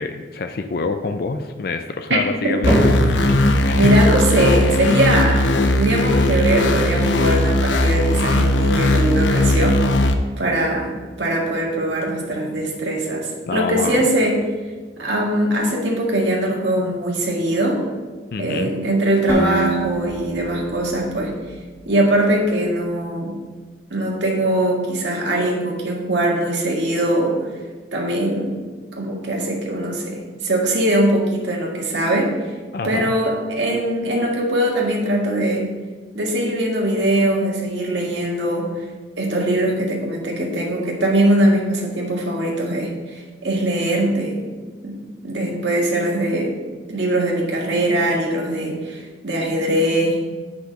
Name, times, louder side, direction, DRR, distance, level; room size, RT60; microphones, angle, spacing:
voice 1, 0.0-3.0 3.7-3.9 13.5-14.1 18.3-18.7 32.7-33.1, left 3 dB, 55° left, 7 dB, 0.4 m, -26 dB
sound 1, 2.6-10.1, left 1 dB, 90° left, 0.7 m, -18 dB
voice 2, 3.8-9.8 10.4-10.9 11.2-14.4 15.0-17.8 18.4-21.3 21.9-23.4 23.9-27.4 27.9-28.6 29.0-32.3 32.8-35.7 36.1-38.7 39.2-44.5 44.8-45.0 45.2-46.6 46.9-50.2, right 1 dB, 80° right, -1 dB, 1.8 m, -21 dB
sound 2, 10.6-19.0 19.3-19.8 20.4-20.5 21.3-21.4, equal, 35° right, 2.3 m, -30 dB
Acoustic guitar, 19.3-22.3, right 2 dB, 15° left, 1.3 m, -28 dB
8.0 x 5.8 x 5.1 m, 1.4 s
head